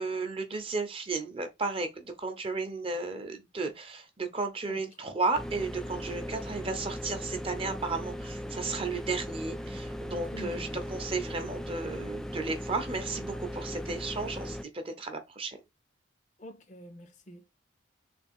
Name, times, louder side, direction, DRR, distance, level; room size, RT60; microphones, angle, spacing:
voice 1, 0.0-15.6, right 3 dB, 30° right, 0.8 m, -34 dB
sound 1, 5.4-14.6, equal, 5° left, 0.3 m, -38 dB
voice 2, 10.3-10.8 16.4-17.5, equal, 35° left, 0.6 m, -47 dB
3.4 x 3.4 x 4.4 m
head